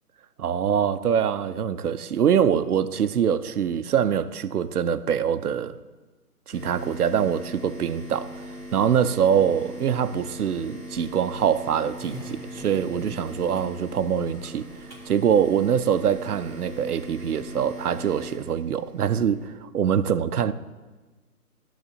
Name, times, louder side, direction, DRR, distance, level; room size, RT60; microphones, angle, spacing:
voice 1, 0.4-5.8 6.5-8.4 8.7-14.7 15.1-20.5, right 8 dB, 75° right, 0.7 m, -24 dB
sound 1, 6.5-19.5, left 1 dB, 25° left, 2.1 m, -40 dB
Skateboard, 8.1-16.1, right 1 dB, 5° left, 1.9 m, -48 dB
12.0 x 4.0 x 6.7 m
hypercardioid pair, 165°, 46 cm